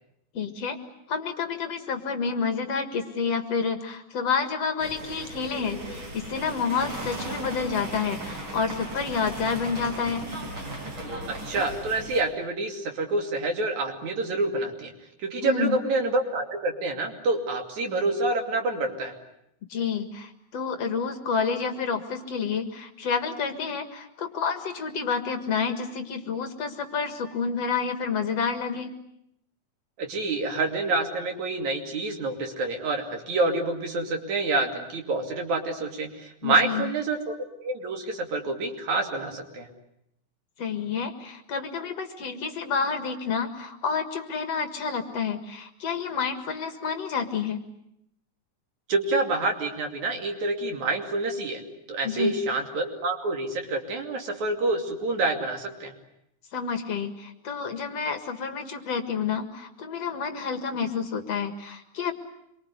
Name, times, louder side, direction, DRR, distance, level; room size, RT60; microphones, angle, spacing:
voice 1, 0.3-0.8 1.1-10.3 15.4-15.8 19.7-28.9 36.4-36.9 40.6-47.6 52.0-52.3 56.5-62.1, left 5 dB, 55° left, 7 dB, 2.6 m, -29 dB
sound 1, 4.8-12.2, right 1 dB, 40° right, 5.0 m, -37 dB
voice 2, 11.3-14.9 15.2-19.1 30.0-37.4 37.6-39.7 48.9-55.9, right 2 dB, 65° right, 4 dB, 4.0 m, -27 dB
26.5 x 23.5 x 9.6 m, 0.77 s
omnidirectional pair, 3.7 m